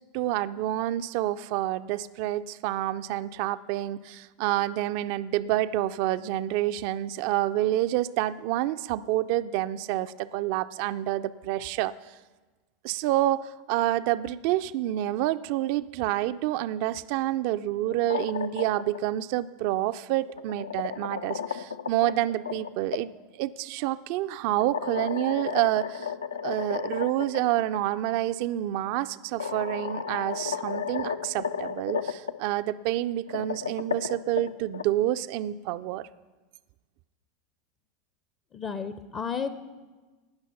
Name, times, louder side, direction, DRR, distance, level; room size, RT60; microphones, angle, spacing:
voice 1, 0.1-11.9 12.8-26.1 26.4-36.1, right 14 dB, 55° right, 13 dB, 0.4 m, -28 dB
sound 1, 17.8-19.0 20.1-23.0 24.6-27.4 27.7-27.8 28.9-29.0 29.4-32.3 33.1-34.8, left 6 dB, 80° left, 0.4 m, -33 dB
voice 2, 38.5-39.6, left 6 dB, 30° left, 11 dB, 0.6 m, -32 dB
18.5 x 6.2 x 5.6 m, 1.2 s
figure-of-eight pair, 80°, 0 cm